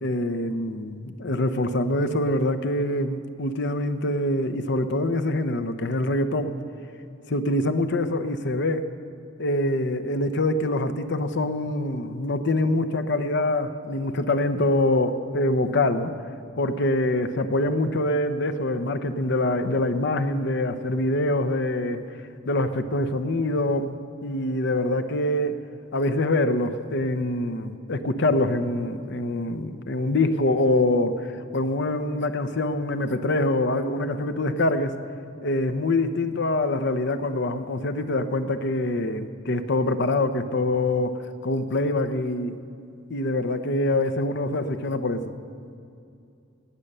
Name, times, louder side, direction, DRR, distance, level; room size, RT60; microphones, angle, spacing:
voice 1, 0.0-6.6 7.3-8.8 9.4-16.1 16.6-22.0 22.5-24.0 24.2-25.5 25.9-34.9 35.4-41.1 41.4-42.6 43.1-45.3, left 1 dB, 60° left, 9 dB, 0.8 m, -25 dB
18.0 x 6.7 x 8.9 m, 2.5 s
head